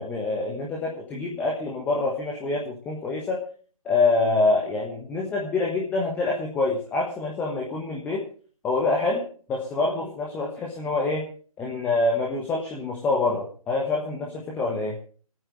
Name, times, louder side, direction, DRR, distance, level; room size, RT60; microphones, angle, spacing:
voice 1, 0.0-3.4 3.8-8.2 8.6-11.3 11.6-15.0, left 3 dB, 10° left, -2 dB, 1.3 m, -26 dB
27.0 x 9.1 x 3.2 m, 0.41 s
figure-of-eight pair, 150°, 19 cm